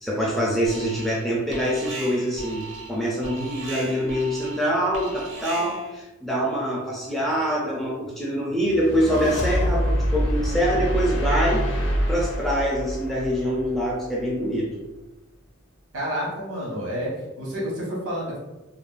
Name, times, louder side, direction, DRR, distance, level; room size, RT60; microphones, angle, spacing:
voice 1, 0.0-11.6 12.1-14.7, equal, ahead, -4 dB, 0.3 m, -25 dB
Alarm, 0.7-1.3 1.5-6.0, right 2 dB, 55° right, 0.5 m, -38 dB
sound 1, 8.7-14.0, equal, 55° left, 0.6 m, -25 dB
voice 2, 15.9-18.4, equal, 85° right, -4 dB, 1.0 m, -29 dB
2.4 x 2.0 x 3.2 m, 1.1 s
head